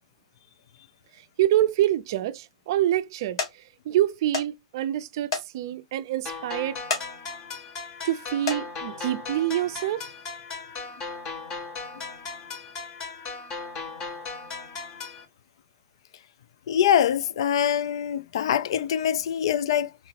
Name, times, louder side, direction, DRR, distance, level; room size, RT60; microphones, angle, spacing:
voice 1, 1.4-6.8 8.0-10.1, right 13 dB, 50° right, 0.4 m, -26 dB
sound 1, 1.9-2.4 2.9-3.1 3.4-3.5 4.3-4.5 4.8-4.9 5.3-5.5 5.9-6.0 6.7-7.1 7.6-7.8 8.3-8.6 9.6-9.7 10.2-10.3, left 5 dB, 85° left, 1.7 m, -30 dB
sound 2, 6.3-15.3, left 4 dB, 20° left, 0.8 m, -37 dB
voice 2, 16.7-19.9, left 9 dB, 70° left, 0.3 m, -24 dB
4.0 x 2.9 x 2.8 m
supercardioid pair, 170°, 3 cm